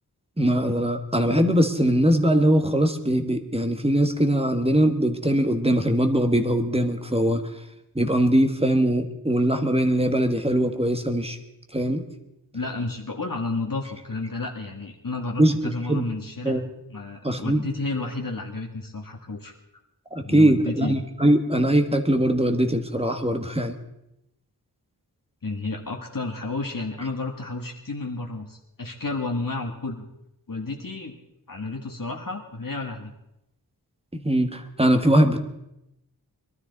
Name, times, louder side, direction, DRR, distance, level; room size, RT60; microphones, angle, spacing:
voice 1, 0.4-7.4 7.9-11.4 11.7-12.0 15.4-15.5 15.9-16.0 16.4-16.6 17.2-17.6 20.1-23.7 34.1-35.4, right 1 dB, 15° right, 6 dB, 1.6 m, -21 dB
voice 2, 12.5-16.6 16.9-19.5 20.2-20.9 25.4-30.1 30.5-31.2 31.5-33.1, left 3 dB, 55° left, 1 dB, 1.6 m, -31 dB
22.5 x 13.0 x 4.0 m, 0.85 s
wide cardioid pair, 50°, 40 cm